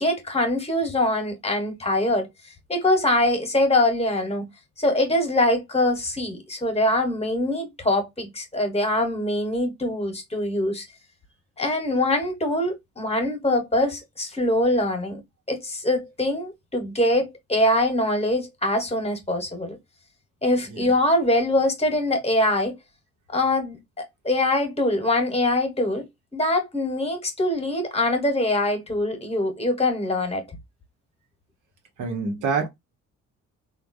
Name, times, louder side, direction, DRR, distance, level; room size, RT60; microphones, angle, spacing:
voice 1, 0.0-2.3 2.7-4.5 4.8-10.9 11.6-15.2 15.5-19.8 20.4-22.8 23.3-26.1 26.3-30.4, left 1 dB, 20° left, 1.1 m, -23 dB
voice 2, 32.0-32.7, right 4 dB, 85° right, 1.1 m, -26 dB
3.4 x 2.3 x 2.5 m
cardioid pair, 90°, 30 cm